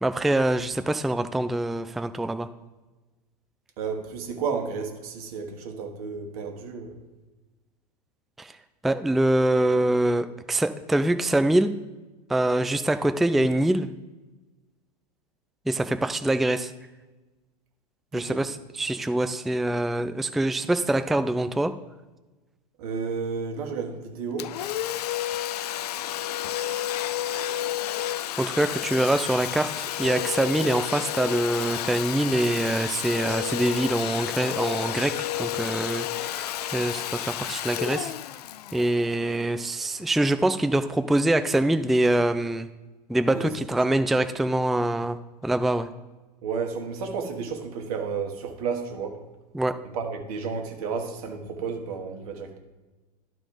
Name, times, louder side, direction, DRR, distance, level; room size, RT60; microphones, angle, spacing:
voice 1, 0.0-2.5 8.4-8.5 8.8-11.7 12.3-13.9 15.7-16.7 18.1-21.7 28.4-38.1 38.7-42.7 43.1-45.2 45.4-45.9 49.5-49.8, right 1 dB, ahead, 10 dB, 0.3 m, -24 dB
voice 2, 3.8-7.0 18.1-18.4 22.8-24.5 43.3-43.5 43.8-44.0 46.4-49.2 49.8-52.6, right 5 dB, 65° right, 4 dB, 1.6 m, -32 dB
Domestic sounds home sounds, 24.4-39.9, left 12 dB, 75° left, 0.4 m, -31 dB
11.5 x 4.2 x 4.9 m, 1.2 s
hypercardioid pair, 90°, 21 cm